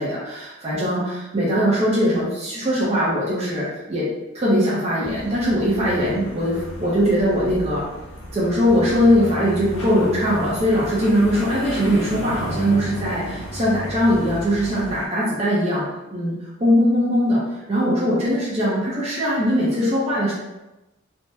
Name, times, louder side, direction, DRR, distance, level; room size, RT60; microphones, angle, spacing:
voice 1, 0.0-4.1 4.3-7.8 8.3-15.8 16.1-17.4 17.7-20.3, equal, 30° right, -7 dB, 0.6 m, -21 dB
sound 1, 5.0-15.1, equal, 60° left, 0.9 m, -33 dB
3.4 x 2.1 x 2.7 m, 1.0 s
head